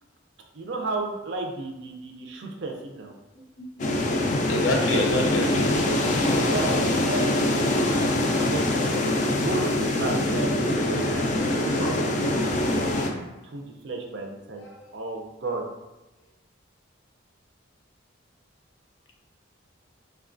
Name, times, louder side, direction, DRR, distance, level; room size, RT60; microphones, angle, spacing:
voice 1, 0.5-3.1 6.5-12.9 13.4-14.6 14.9-15.6, right 3 dB, 60° right, 2 dB, 0.5 m, -34 dB
sound 1, 3.8-13.1, left 1 dB, 40° left, 0.3 m, -24 dB
voice 2, 4.5-5.7, left 1 dB, 85° left, 1 dB, 0.6 m, -25 dB
3.7 x 2.3 x 2.5 m, 1.0 s
head